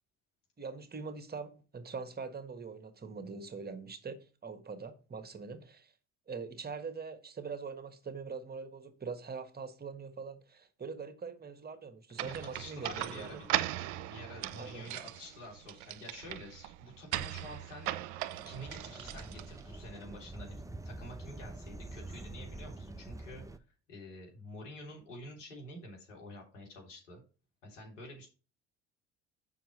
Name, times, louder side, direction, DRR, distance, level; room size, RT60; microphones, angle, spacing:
voice 1, 0.6-5.9 6.3-13.4 14.5-14.9, right 5 dB, 25° right, 1.5 m, -43 dB
voice 2, 12.2-13.6 14.0-17.9 18.4-23.5 23.9-27.2 27.6-28.3, left 1 dB, 85° left, 3.4 m, -48 dB
sound 1, 12.2-19.8, right 14 dB, 65° right, 0.7 m, -39 dB
sound 2, 18.3-23.6, right 2 dB, 10° right, 0.8 m, -46 dB
7.3 x 5.8 x 4.2 m
hypercardioid pair, 60°, 36 cm